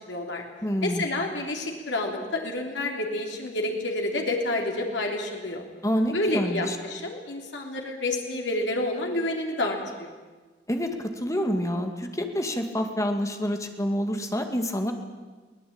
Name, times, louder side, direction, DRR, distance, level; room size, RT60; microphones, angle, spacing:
voice 1, 0.1-0.4 0.8-5.6 6.1-10.1, left 2 dB, 90° left, 1 dB, 3.4 m, -29 dB
voice 2, 0.6-1.1 5.8-6.8 10.7-14.9, equal, 20° left, 5 dB, 2.2 m, -27 dB
23.0 x 18.0 x 8.8 m, 1.3 s
head